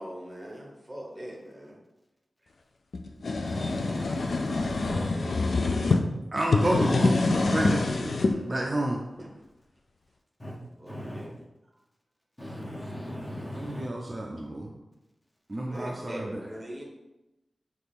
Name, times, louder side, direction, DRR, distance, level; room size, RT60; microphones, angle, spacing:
voice 1, 0.0-1.8 4.8-5.9 9.2-9.3 10.8-11.3 15.6-16.8, equal, 10° right, -2 dB, 1.1 m, -41 dB
sound 1, 2.9-6.0 6.4-8.3, left 3 dB, 70° left, 0.4 m, -26 dB
voice 2, 3.4-5.1 10.4-10.6 10.9-11.3 12.4-13.9, equal, 15° left, -3 dB, 1.1 m, -38 dB
voice 3, 6.3-9.0 13.6-14.7 15.5-16.2, right 1 dB, 30° right, 0 dB, 0.4 m, -30 dB
6.0 x 2.5 x 3.5 m, 0.95 s
wide cardioid pair, 105°, 0 cm